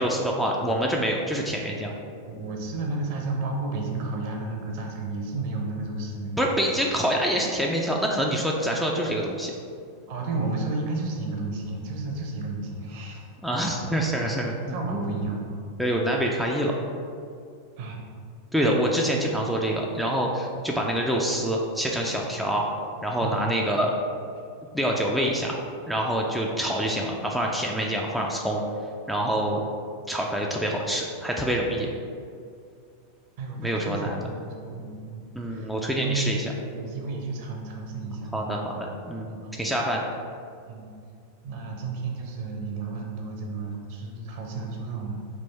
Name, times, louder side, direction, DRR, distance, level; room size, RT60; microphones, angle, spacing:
voice 1, 0.0-1.9 6.4-9.5 13.4-15.3 15.8-16.8 18.5-22.6 23.0-24.0 24.7-25.6 25.9-28.6 29.1-29.6 30.1-31.9 33.6-34.2 35.3-36.5 38.3-39.3 39.6-40.0, equal, ahead, -2 dB, 0.3 m, -26 dB
voice 2, 2.3-6.4 10.1-13.2 14.7-15.6 17.8-18.1 23.2-23.4 33.4-35.7 36.0-38.6 39.3-39.6 40.7-40.9 41.4-45.2, right 3 dB, 50° right, 1 dB, 0.7 m, -32 dB
3.6 x 2.6 x 4.1 m, 2.3 s
figure-of-eight pair, 90°, 0 cm